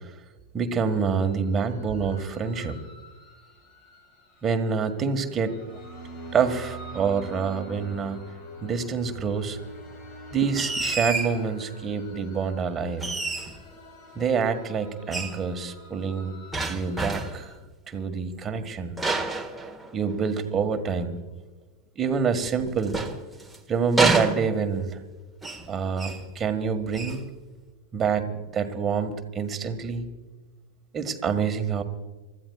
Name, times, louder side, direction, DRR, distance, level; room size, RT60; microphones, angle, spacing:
voice 1, 0.5-2.8 4.4-5.6 6.3-8.2 8.6-9.6 10.3-13.1 14.2-16.3 16.7-17.5 17.9-19.0 19.9-21.2 22.0-23.0 23.7-25.0 25.7-27.2 27.9-30.1 30.9-31.8, right 5 dB, 25° right, 7 dB, 1.7 m, -26 dB
sound 1, 0.8-17.6, right 1 dB, 40° left, 4.5 m, -45 dB
sound 2, 10.6-11.4 13.0-13.7 15.1-15.4 16.5-17.5 19.0-20.2 22.4-23.6 24.0-24.9 25.4-25.7 26.0-26.3 26.9-27.2, right 3 dB, 5° right, 1.7 m, -28 dB
30.0 x 15.0 x 2.4 m, 1.2 s
figure-of-eight pair, 90°, 0 cm